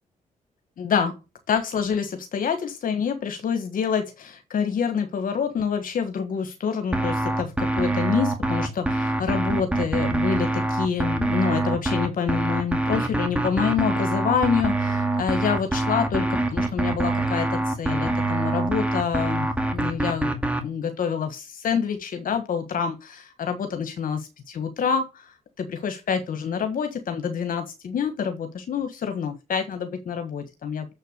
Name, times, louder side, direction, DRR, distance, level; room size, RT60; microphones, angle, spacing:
voice 1, 0.8-1.1 1.5-20.3 20.6-30.9, left 7 dB, 70° left, 8 dB, 1.5 m, -27 dB
sound 1, 6.9-20.6, right 2 dB, 10° right, 2.3 m, -25 dB
7.2 x 6.6 x 6.6 m, 0.26 s
cardioid pair, 75°, 15 cm